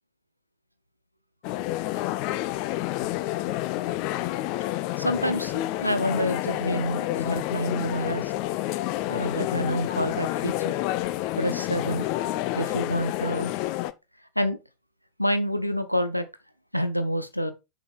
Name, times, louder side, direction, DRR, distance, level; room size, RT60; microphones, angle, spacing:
sound 1, 1.4-13.9, left 16 dB, 45° left, 0.6 m, -29 dB
voice 1, 5.0-8.3 9.1-10.8 11.4-12.1 12.6-13.5 14.4-14.6 15.2-16.3 16.7-17.5, equal, 90° left, 0.8 m, -28 dB
6.7 x 4.9 x 4.3 m
figure-of-eight pair, 90°, 0 cm